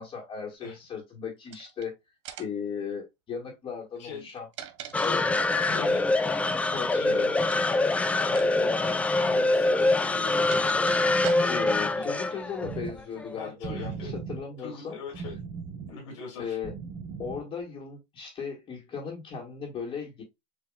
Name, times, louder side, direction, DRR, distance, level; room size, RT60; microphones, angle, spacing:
voice 1, 0.0-1.9 2.4-4.5 5.0-5.3 5.7-5.9 6.7-7.3 11.5-15.0 16.4-16.7 17.2-20.2, left 6 dB, 35° left, 1.7 m, -36 dB
sound 1, 1.5-1.9 2.3-2.7 4.2-5.7 7.5-7.8 8.2-8.5 8.8-8.9 9.9-11.8, right 11 dB, 75° right, 1.0 m, -42 dB
sound 2, 4.9-13.3, left 2 dB, 10° left, 0.3 m, -25 dB
voice 2, 5.5-6.1 6.9-7.6 8.2-10.9 11.9-12.1 13.4-14.1 14.6-15.4 15.9-16.6, left 5 dB, 90° left, 2.9 m, -42 dB
sound 3, 12.6-17.6, right 6 dB, 50° right, 1.9 m, -39 dB
7.2 x 2.8 x 2.4 m
supercardioid pair, 120°, 15 cm